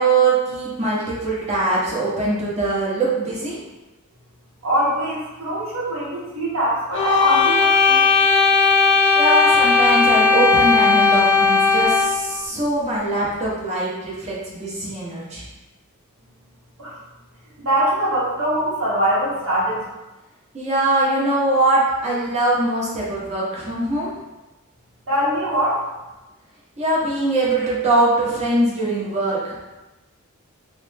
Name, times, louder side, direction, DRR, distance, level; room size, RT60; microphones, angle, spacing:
voice 1, 0.0-3.6 9.2-15.4 20.5-24.1 26.8-29.7, right 2 dB, 30° right, -6 dB, 0.9 m, -22 dB
voice 2, 4.6-8.0 16.8-16.9 17.6-19.8 25.1-25.8, right 1 dB, 65° right, -7 dB, 0.9 m, -22 dB
sound 1, 6.9-12.2, left 4 dB, 55° left, 0.6 m, -16 dB
3.2 x 2.1 x 3.3 m, 1.1 s
head